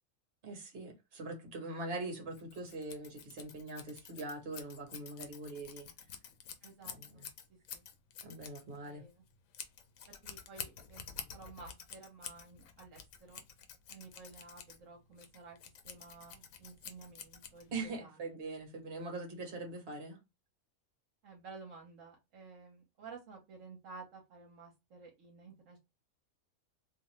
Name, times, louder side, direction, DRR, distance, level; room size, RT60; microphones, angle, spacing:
voice 1, 0.4-5.9 6.8-7.3 8.2-9.0 17.7-20.2, right 2 dB, 50° right, 1.2 m, -42 dB
Scissors, 2.3-17.9, left 7 dB, 80° left, 1.0 m, -49 dB
voice 2, 6.6-7.2 7.7-7.8 8.8-9.2 10.2-11.0 11.3-13.4 13.9-15.6 15.8-18.4 21.2-25.8, right 4 dB, 70° right, 1.1 m, -53 dB
2.5 x 2.5 x 3.0 m
omnidirectional pair, 1.4 m